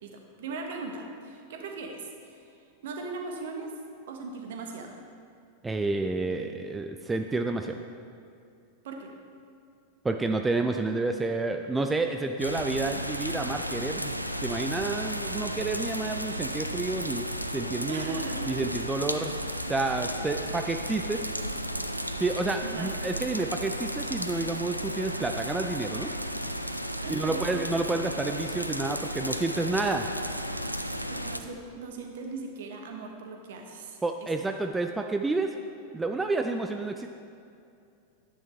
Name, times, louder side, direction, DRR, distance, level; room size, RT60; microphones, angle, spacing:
voice 1, 0.0-3.7 4.1-5.0 8.8-9.1 17.9-18.6 22.6-23.0 27.0-27.7 30.7-34.0, right 3 dB, 55° right, 3 dB, 1.3 m, -39 dB
voice 2, 5.6-7.8 10.0-14.1 14.4-17.3 17.5-18.2 18.5-19.3 19.7-21.2 22.2-26.1 27.1-30.1 34.0-35.5 35.9-37.1, right 3 dB, 10° right, 5 dB, 0.4 m, -29 dB
sound 1, 12.4-31.4, equal, 90° right, 0.4 m, -34 dB
10.0 x 9.8 x 3.5 m, 2.5 s
figure-of-eight pair, 90°, 0 cm